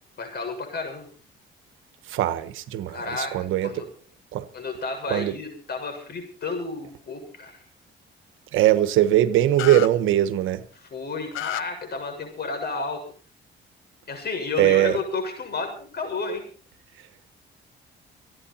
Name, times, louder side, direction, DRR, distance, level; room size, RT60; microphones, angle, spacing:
voice 1, 0.2-1.1 2.9-3.9 4.5-7.6 10.8-13.0 14.1-16.4, left 4 dB, 55° left, 7.5 m, -32 dB
voice 2, 2.1-3.0 3.3-3.7 4.3-4.4 5.1-5.4 8.5-10.6 14.6-15.0, right 13 dB, 85° right, 1.3 m, -20 dB
sound 1, 9.6-9.9 11.3-11.6, left 13 dB, 85° left, 0.8 m, -29 dB
29.0 x 9.9 x 4.4 m
cardioid pair, 90°, 20 cm